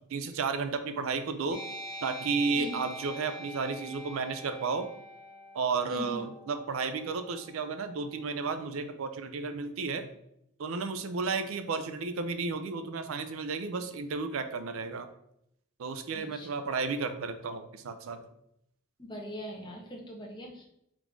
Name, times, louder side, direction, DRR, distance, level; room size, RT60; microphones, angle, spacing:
voice 1, 0.0-1.6 2.0-4.9 5.5-10.1 10.6-15.1 15.8-18.2, right 4 dB, 70° right, 8 dB, 0.4 m, -33 dB
sound 1, 1.5-8.6, equal, ahead, 1.0 m, -45 dB
voice 2, 5.9-6.2 16.2-16.5 19.0-20.6, equal, 20° left, -1 dB, 0.7 m, -41 dB
3.6 x 2.5 x 4.6 m, 0.76 s
head